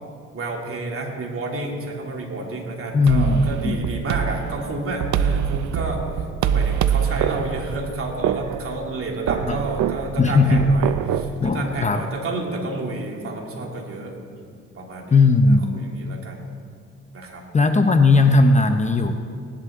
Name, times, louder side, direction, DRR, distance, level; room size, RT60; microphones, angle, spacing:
voice 1, 0.3-15.2 15.7-16.4 17.1-17.4, right 2 dB, 45° right, 0 dB, 2.7 m, -30 dB
voice 2, 2.9-3.8 9.4-9.6 10.2-10.7 11.4-12.0 15.1-15.8 17.5-19.1, left 3 dB, 25° left, 6 dB, 0.8 m, -17 dB
sound 1, 3.1-11.3, right 9 dB, 70° right, 0.7 m, -25 dB
18.5 x 11.5 x 3.7 m, 2.1 s
cardioid pair, 90°, 30 cm